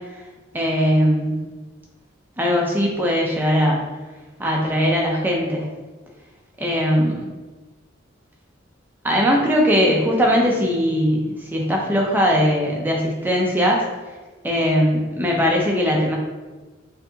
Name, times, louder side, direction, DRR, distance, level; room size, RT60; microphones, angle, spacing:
voice 1, 0.5-1.4 2.4-3.9 4.4-5.7 6.6-7.3 9.0-13.9 14.4-16.2, equal, 10° right, -2 dB, 0.5 m, -20 dB
4.5 x 2.8 x 2.7 m, 1.2 s
head